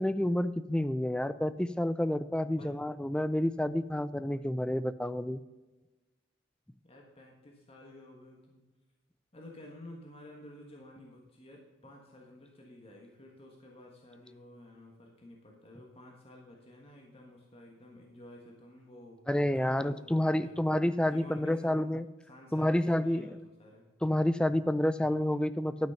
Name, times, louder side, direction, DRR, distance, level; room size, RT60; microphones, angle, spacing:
voice 1, 0.0-5.4 19.3-22.1 22.5-23.4 24.0-25.9, left 1 dB, 5° left, 13 dB, 0.3 m, -29 dB
voice 2, 2.4-2.7 6.8-8.6 9.3-19.2 19.5-20.7 21.0-21.8 22.3-22.8 23.0-23.8, left 1 dB, 30° left, 0 dB, 1.4 m, -52 dB
11.5 x 6.1 x 5.8 m, 1.2 s
head